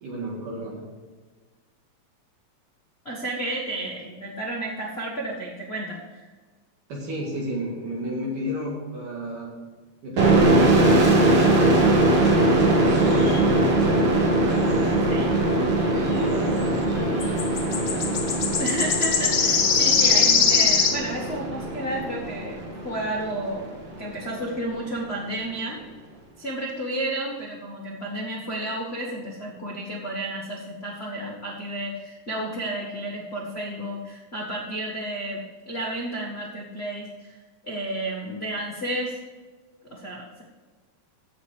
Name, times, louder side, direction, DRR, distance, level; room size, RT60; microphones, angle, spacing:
voice 1, 0.0-0.9 6.9-9.5 10.0-14.2 15.4-17.4 17.7-17.9, equal, 75° right, -4 dB, 3.5 m, -32 dB
voice 2, 3.0-6.2 15.1-15.3 18.6-22.6 22.8-23.7 24.0-25.8 26.4-37.3 37.6-39.2 39.9-40.4, right 1 dB, 65° left, -2 dB, 0.6 m, -32 dB
sound 1, 10.2-23.6, right 2 dB, 45° right, 2.2 m, -21 dB
sound 2, 13.2-13.4 17.2-21.0, left 6 dB, 90° left, 1.0 m, -21 dB
15.0 x 5.2 x 5.0 m, 1.4 s
omnidirectional pair, 3.8 m